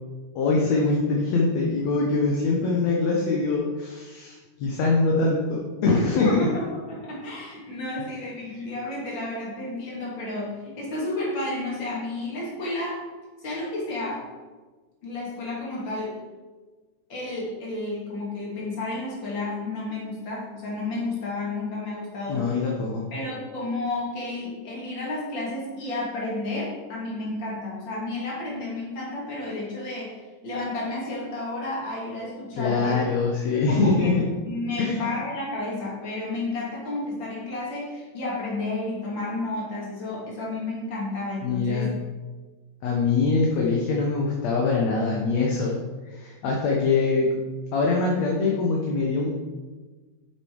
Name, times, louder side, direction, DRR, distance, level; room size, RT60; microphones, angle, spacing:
voice 1, 0.4-6.5 22.3-23.0 32.5-34.1 34.8-35.1 41.4-41.9 42.8-45.8 46.0-47.3 47.7-49.3, left 3 dB, 60° left, -2 dB, 2.1 m, -23 dB
voice 2, 5.9-6.6 6.9-13.0 13.4-14.2 15.0-16.1 17.1-22.6 23.1-30.2 30.4-33.0 33.4-34.1 34.5-41.9, left 2 dB, 35° left, -5 dB, 3.1 m, -31 dB
9.2 x 7.5 x 4.8 m, 1.3 s
omnidirectional pair, 4.0 m